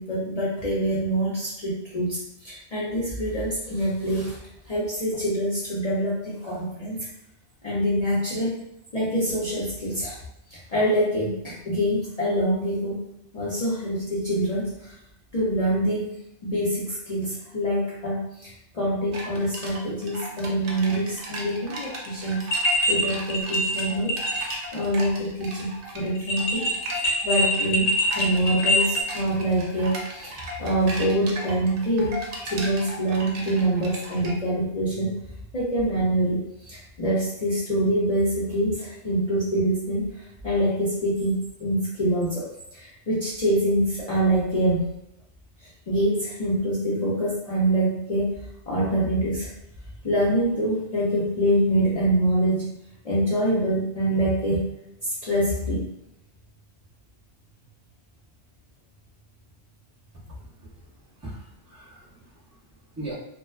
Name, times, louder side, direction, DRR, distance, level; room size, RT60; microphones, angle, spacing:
voice 1, 0.0-4.4 4.7-7.1 7.6-8.6 8.9-10.2 10.7-13.0 13.3-14.9 15.3-16.2 16.4-22.5 22.9-25.7 25.9-32.2 32.4-35.2 35.5-40.1 40.4-42.4 42.7-44.9 45.9-48.3 48.7-49.5 50.0-52.8 53.0-54.6 55.0-55.9, right 1 dB, 50° left, -8 dB, 0.4 m, -25 dB
sound 1, 19.1-34.4, right 1 dB, 60° right, 0.6 m, -37 dB
sound 2, 22.5-23.0 23.3-24.5 24.8-24.9 26.2-29.0, left 1 dB, 80° left, 0.9 m, -24 dB
voice 2, 60.1-60.9 61.2-63.1, right 2 dB, 20° right, -6 dB, 0.5 m, -41 dB
2.5 x 2.2 x 2.3 m, 0.81 s
omnidirectional pair, 1.3 m